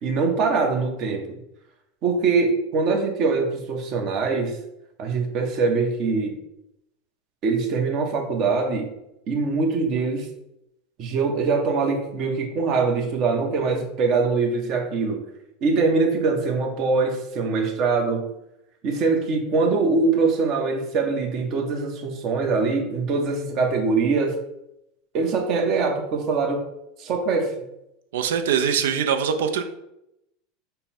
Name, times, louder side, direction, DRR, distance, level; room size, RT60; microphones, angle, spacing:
voice 1, 0.0-1.2 2.0-4.6 5.0-6.4 7.4-8.9 9.3-10.3 11.0-15.2 15.6-18.3 18.8-24.4 25.1-26.6 27.0-27.5, right 4 dB, 50° right, 3 dB, 1.1 m, -23 dB
voice 2, 28.1-29.6, right 7 dB, 80° right, 7 dB, 0.5 m, -22 dB
5.4 x 2.2 x 4.3 m, 0.84 s
hypercardioid pair, 105°, 0 cm